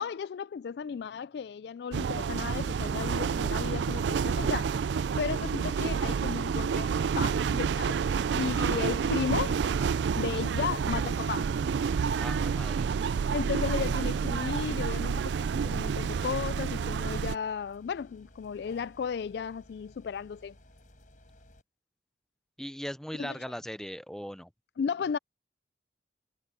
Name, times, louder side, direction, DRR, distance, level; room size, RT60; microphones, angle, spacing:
voice 1, 0.0-4.7 5.2-9.6 10.1-11.5 13.3-20.6 23.2-23.4 24.8-25.2, left 6 dB, 65° left, 0.3 m, -34 dB
sound 1, 1.9-17.4, right 6 dB, 85° right, 0.4 m, -29 dB
sound 2, 8.3-21.6, left 1 dB, 45° left, 4.6 m, -57 dB
voice 2, 12.2-12.9 22.6-24.5, equal, 5° left, 0.6 m, -39 dB
head